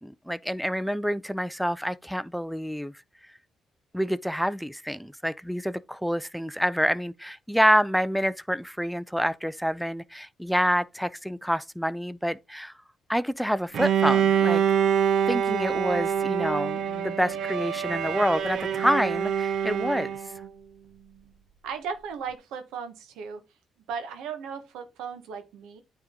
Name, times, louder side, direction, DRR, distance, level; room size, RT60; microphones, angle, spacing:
voice 1, 0.0-2.9 3.9-12.7 13.1-14.8 15.3-20.2, equal, ahead, 0.4 m, -27 dB
Bowed string instrument, 13.7-20.5, right 8 dB, 70° right, 0.6 m, -25 dB
voice 2, 21.6-23.4 23.9-25.8, right 6 dB, 90° right, 1.2 m, -36 dB
9.2 x 3.6 x 3.6 m
cardioid pair, 75°, 0 cm